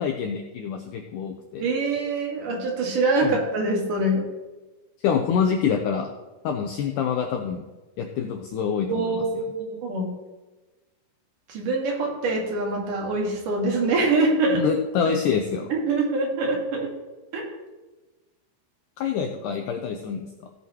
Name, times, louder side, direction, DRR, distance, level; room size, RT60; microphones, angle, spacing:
voice 1, 0.0-1.7 3.2-3.4 5.0-6.1 6.4-7.6 8.0-9.1 14.6-15.7 19.0-20.5, left 7 dB, 80° left, 4 dB, 1.9 m, -26 dB
voice 2, 1.6-4.3 8.9-9.4 9.7-10.1 11.5-14.6 15.7-16.9 17.3-17.5, right 2 dB, 60° right, -1 dB, 3.3 m, -24 dB
16.0 x 8.3 x 3.0 m, 1.2 s
omnidirectional pair, 4.6 m